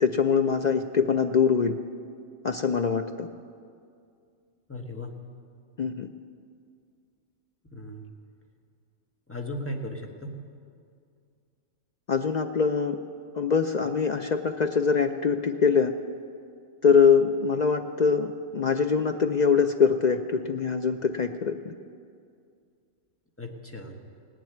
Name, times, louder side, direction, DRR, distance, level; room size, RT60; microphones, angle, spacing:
voice 1, 0.0-1.8 2.4-3.3 5.8-6.1 12.1-13.0 13.4-15.9 16.8-21.7, left 6 dB, 60° left, 7 dB, 0.4 m, -23 dB
voice 2, 4.7-5.1 7.7-8.1 9.3-10.4 23.4-24.0, left 1 dB, 10° left, 2 dB, 1.2 m, -36 dB
17.5 x 7.5 x 9.3 m, 2.3 s
omnidirectional pair, 1.3 m